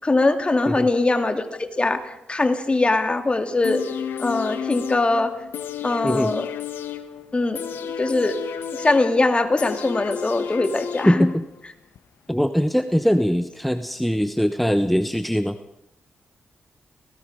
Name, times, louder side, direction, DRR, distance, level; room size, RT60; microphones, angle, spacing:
voice 1, 0.0-1.4 1.8-3.8 4.2-5.3 5.8-6.5 7.3-7.6 8.0-8.4 8.7-11.3, left 2 dB, 30° left, 6 dB, 2.7 m, -21 dB
sound 1, 3.6-11.6 12.0-12.1, left 8 dB, 85° left, 1.4 m, -32 dB
voice 2, 11.1-11.4 12.3-15.6, equal, ahead, 9 dB, 1.1 m, -21 dB
30.0 x 18.5 x 5.2 m, 0.80 s
cardioid pair, 55°, 4 cm